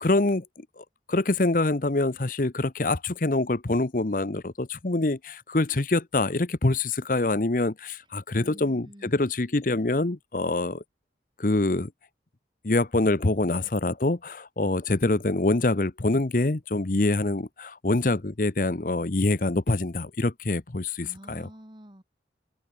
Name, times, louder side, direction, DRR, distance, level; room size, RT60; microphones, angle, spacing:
voice 1, 0.0-10.8 11.4-11.9 12.6-21.5, left 2 dB, 50° left, 0.9 m, -25 dB
voice 2, 8.3-9.2 21.0-22.0, equal, 25° right, 3.0 m, -47 dB
head